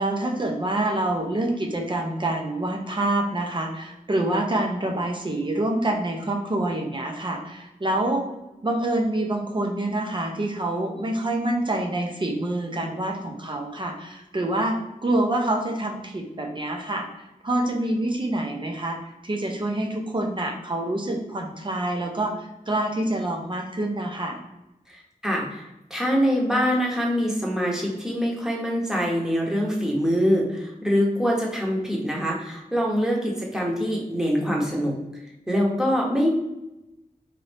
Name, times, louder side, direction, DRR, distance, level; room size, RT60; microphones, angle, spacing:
voice 1, 0.0-8.3 8.6-24.4, right 1 dB, 35° right, 2 dB, 0.7 m, -26 dB
voice 2, 24.9-25.6 25.9-35.0 35.5-36.3, equal, 5° right, -2 dB, 1.0 m, -24 dB
4.1 x 2.7 x 3.3 m, 0.92 s
wide cardioid pair, 85°, 14 cm